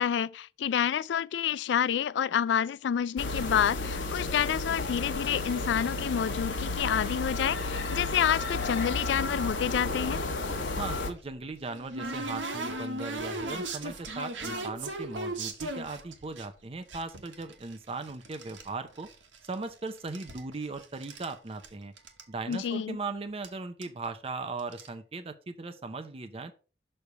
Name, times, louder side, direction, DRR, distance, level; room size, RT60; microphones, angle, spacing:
voice 1, 0.0-10.2 22.5-23.0, left 8 dB, 70° left, 0.3 m, -28 dB
sound 1, 3.2-11.1, left 3 dB, 90° left, 1.1 m, -32 dB
voice 2, 10.8-19.1 19.5-21.9 22.3-26.5, right 3 dB, 30° right, 0.6 m, -38 dB
sound 2, 11.2-16.5 16.9-18.7 19.0-19.7 20.0-21.3 21.6-21.7 22.0-22.2 22.5-22.6 23.4-23.5 23.8-24.1 24.6-24.9, right 2 dB, 90° right, 1.3 m, -37 dB
6.7 x 3.3 x 5.8 m
head